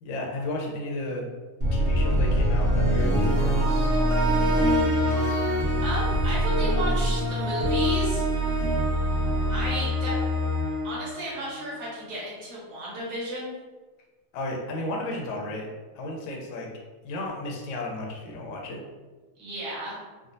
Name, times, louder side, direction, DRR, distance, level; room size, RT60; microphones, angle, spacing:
voice 1, 0.0-1.2 1.7-4.0 4.5-5.4 14.3-15.7 15.9-16.7 17.0-18.8, left 2 dB, 70° left, 0 dB, 0.7 m, -34 dB
sound 1, 1.6-11.8, equal, 45° right, 0.8 m, -24 dB
voice 2, 5.8-8.6 9.5-10.1 10.8-13.5 19.4-20.0, right 1 dB, 65° right, -6 dB, 1.6 m, -33 dB
3.6 x 2.1 x 2.5 m, 1.3 s
omnidirectional pair, 1.9 m